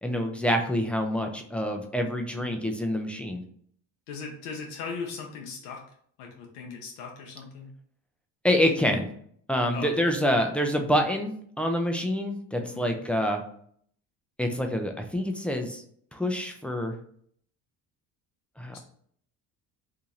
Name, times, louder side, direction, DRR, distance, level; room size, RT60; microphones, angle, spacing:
voice 1, 0.0-3.4 8.4-9.1 9.5-13.4 14.4-15.8 16.1-16.9 18.6-18.8, equal, 5° left, 3 dB, 0.5 m, -27 dB
voice 2, 4.1-5.8 6.2-7.7 9.7-9.9 12.6-12.9 18.7-18.8, left 5 dB, 75° left, 1 dB, 0.8 m, -38 dB
2.8 x 2.7 x 3.7 m, 0.62 s
hypercardioid pair, 55°, 49 cm